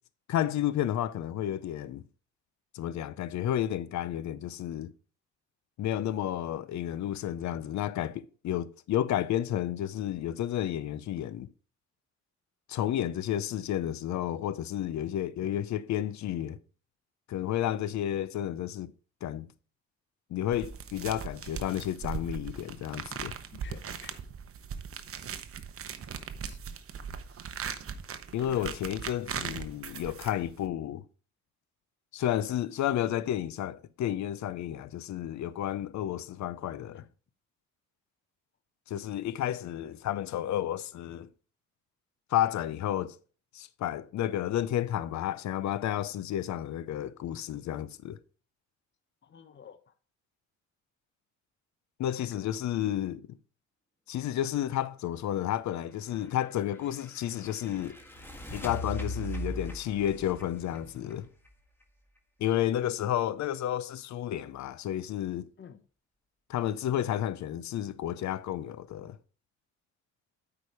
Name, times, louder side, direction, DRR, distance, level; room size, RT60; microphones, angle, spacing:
voice 1, 0.3-2.0 2.7-4.9 5.8-11.5 12.7-16.6 17.3-18.9 19.2-19.5 20.3-23.3 28.3-31.0 32.1-37.0 38.9-41.3 42.3-43.2 43.5-48.2 52.0-53.3 54.1-58.0 58.5-61.3 62.4-65.5 66.5-69.2, left 11 dB, 65° left, 0.7 m, -31 dB
sound 1, 20.5-30.7, right 7 dB, 50° right, 0.9 m, -39 dB
voice 2, 23.5-24.2 26.4-26.6 27.3-27.4 28.4-28.7 36.9-37.1 49.2-50.0 52.2-52.6 65.6-65.8, left 7 dB, 40° left, 0.9 m, -51 dB
sound 2, 56.1-61.8, equal, 5° left, 1.7 m, -40 dB
8.4 x 5.0 x 4.8 m
cardioid pair, 90°, 30 cm